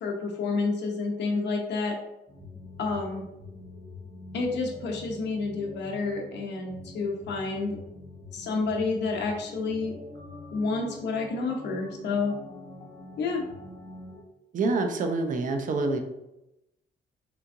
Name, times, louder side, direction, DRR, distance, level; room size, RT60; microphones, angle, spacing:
voice 1, 0.0-2.0 2.8-3.3 4.3-7.8 8.3-10.0 10.5-12.3 13.2-13.4, left 3 dB, 65° left, 1 dB, 0.9 m, -29 dB
sound 1, 2.3-14.2, left 2 dB, 20° left, 0.8 m, -45 dB
voice 2, 14.5-16.0, right 3 dB, 45° right, 5 dB, 0.5 m, -26 dB
3.4 x 3.0 x 2.6 m, 0.90 s
cardioid pair, 95°, 19 cm